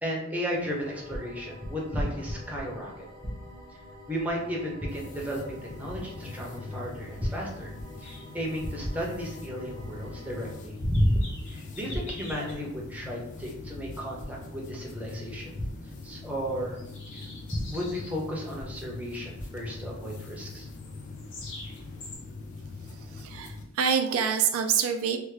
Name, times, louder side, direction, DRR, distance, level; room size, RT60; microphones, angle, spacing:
voice 1, 0.0-3.1 4.1-7.7 8.0-15.6 16.0-16.8 17.1-17.2 17.5-20.7, equal, 5° right, -3 dB, 0.6 m, -32 dB
sound 1, 0.5-10.5, left 1 dB, 20° left, 0.8 m, -48 dB
sound 2, 4.9-23.6, left 3 dB, 35° left, 0.4 m, -43 dB
sound 3, 8.0-22.2, left 2 dB, 60° left, 0.8 m, -49 dB
voice 2, 22.9-25.2, right 7 dB, 70° right, 6 dB, 0.3 m, -27 dB
3.2 x 2.1 x 3.1 m, 0.84 s
head